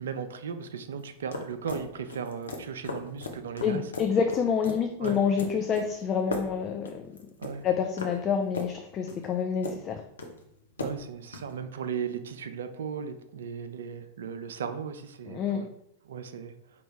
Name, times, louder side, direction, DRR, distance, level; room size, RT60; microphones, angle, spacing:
voice 1, 0.0-3.9 5.0-5.2 7.4-7.7 10.8-15.7 16.0-16.5, right 7 dB, 65° right, 10 dB, 0.4 m, -36 dB
sound 1, 1.0-11.5, left 2 dB, 70° left, 0.7 m, -39 dB
voice 2, 3.6-7.2 7.6-10.0 15.3-15.6, left 6 dB, 30° left, 3 dB, 0.4 m, -28 dB
5.2 x 2.8 x 3.3 m, 0.75 s
figure-of-eight pair, 90°, 0 cm